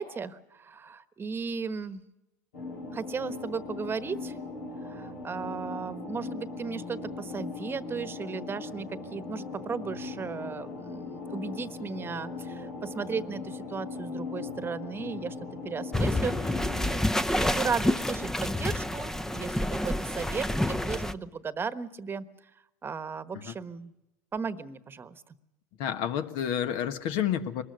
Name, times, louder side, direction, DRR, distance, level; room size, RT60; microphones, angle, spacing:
voice 1, 0.0-2.0 2.9-4.4 4.8-15.3 15.6-22.2 22.8-23.9 24.3-25.2, right 5 dB, 25° right, 13 dB, 1.2 m, -35 dB
sound 1, 2.5-17.0, left 3 dB, 85° left, 5.7 m, -39 dB
sound 2, 15.9-21.1, left 1 dB, 5° left, 0.7 m, -28 dB
voice 2, 25.8-27.6, left 9 dB, 60° left, 9 dB, 1.6 m, -30 dB
23.5 x 20.5 x 6.6 m, 0.94 s
hypercardioid pair, 95°, 9 cm